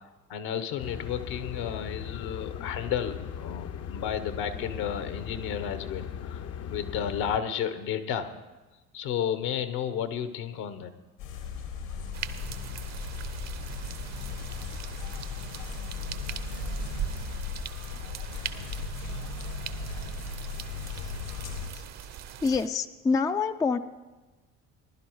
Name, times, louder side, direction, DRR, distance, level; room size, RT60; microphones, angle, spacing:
voice 1, 0.0-6.4 6.7-8.3 8.9-10.9, left 8 dB, 60° left, 11 dB, 1.1 m, -32 dB
sound 1, 0.8-7.4, left 8 dB, 40° left, 0.7 m, -38 dB
sound 2, 11.2-21.7, left 6 dB, 75° left, 2.2 m, -37 dB
sound 3, 12.1-22.7, right 9 dB, 40° right, 0.7 m, -40 dB
voice 2, 22.4-23.8, left 4 dB, 10° left, 10 dB, 0.4 m, -26 dB
20.0 x 11.5 x 3.1 m, 1.2 s
hypercardioid pair, 55°, 40 cm